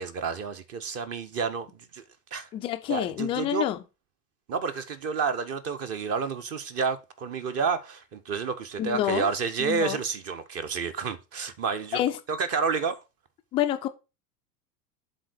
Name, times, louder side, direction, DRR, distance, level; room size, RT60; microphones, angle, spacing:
voice 1, 0.0-2.0 2.3-2.5 2.9-3.7 4.5-12.0 12.3-13.0, right 5 dB, 30° right, 1.0 m, -30 dB
voice 2, 2.5-3.8 8.8-9.3 9.6-10.0 11.9-12.2 13.5-13.9, left 12 dB, 15° left, 0.3 m, -27 dB
7.6 x 3.9 x 6.5 m
figure-of-eight pair, 85°, 49 cm